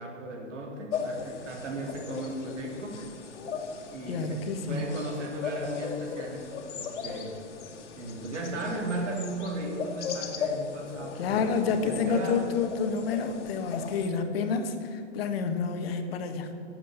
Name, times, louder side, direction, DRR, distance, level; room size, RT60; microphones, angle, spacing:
voice 1, 0.0-3.0 3.9-7.4 8.0-12.4, right 1 dB, 75° right, 1 dB, 3.3 m, -36 dB
sound 1, 0.9-14.1, left 6 dB, 70° left, 2.1 m, -38 dB
voice 2, 4.1-4.8 11.2-16.5, left 5 dB, 50° left, 6 dB, 1.6 m, -29 dB
12.5 x 8.1 x 8.0 m, 2.7 s
hypercardioid pair, 150°, 37 cm